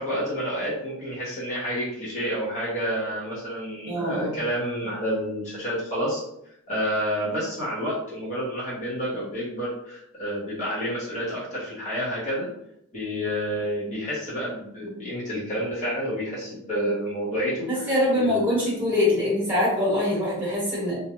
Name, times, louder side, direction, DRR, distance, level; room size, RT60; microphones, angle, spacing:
voice 1, 0.0-6.2 6.7-12.5 12.9-18.4, equal, 35° left, -8 dB, 0.8 m, -29 dB
voice 2, 3.9-4.3 17.7-21.0, left 1 dB, 5° right, -9 dB, 1.2 m, -23 dB
2.4 x 2.2 x 2.9 m, 0.77 s
head